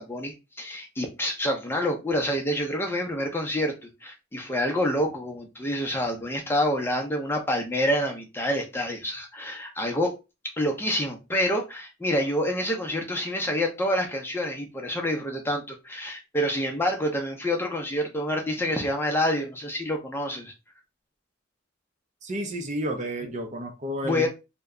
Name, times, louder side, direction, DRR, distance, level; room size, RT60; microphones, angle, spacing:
voice 1, 0.0-3.7 4.0-10.1 10.6-20.5 23.2-23.3 24.0-24.3, equal, 10° left, 2 dB, 0.6 m, -27 dB
voice 2, 22.2-24.3, equal, 35° right, 5 dB, 0.6 m, -31 dB
2.8 x 2.2 x 3.6 m, 0.26 s
head